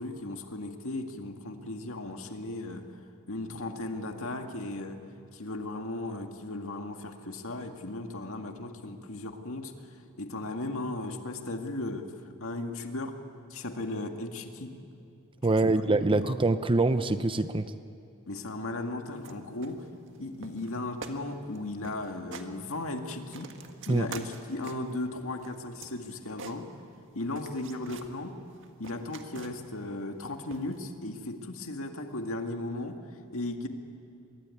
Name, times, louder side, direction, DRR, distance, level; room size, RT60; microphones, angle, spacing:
voice 1, 0.0-2.9 3.3-5.0 5.3-12.1 12.4-13.2 13.5-14.8 15.6-16.4 18.3-19.9 20.2-23.6 23.9-26.7 27.1-28.4 28.8-33.0 33.3-33.7, left 2 dB, 70° left, 5 dB, 2.1 m, -36 dB
voice 2, 15.4-17.7 23.9-24.1, right 2 dB, 25° right, 11 dB, 0.6 m, -25 dB
sound 1, 19.1-19.4 19.6-20.2 20.4-20.7 21.0-21.2 21.5-21.6 21.8-22.5 22.9-25.0 25.4-27.1 27.4-28.1 28.5-29.8 30.5-30.8, right 4 dB, 60° right, 1.8 m, -46 dB
25.5 x 22.0 x 9.8 m, 2.6 s
head